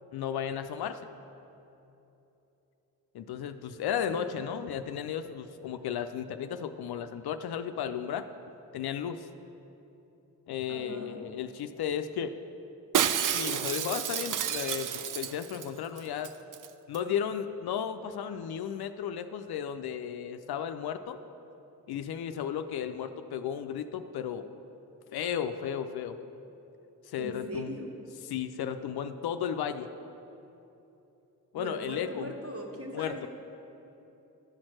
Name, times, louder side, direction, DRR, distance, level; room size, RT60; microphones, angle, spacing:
voice 1, 0.1-1.0 3.1-8.3 8.7-9.3 10.5-12.3 13.3-16.3 16.9-21.2 21.9-24.4 25.1-26.2 27.1-27.8 28.3-29.9 31.5-32.3 32.9-33.3, left 8 dB, 65° left, 9 dB, 0.5 m, -34 dB
voice 2, 4.1-4.5 10.7-11.2 27.2-27.9 31.6-33.3, right 1 dB, 35° right, 0 dB, 1.6 m, -40 dB
Shatter, 12.9-15.7 16.0-16.1 16.2-16.7 16.9-17.0, right 9 dB, 50° right, 0.5 m, -30 dB
11.0 x 4.4 x 6.3 m, 3.0 s
supercardioid pair, 45°, 41 cm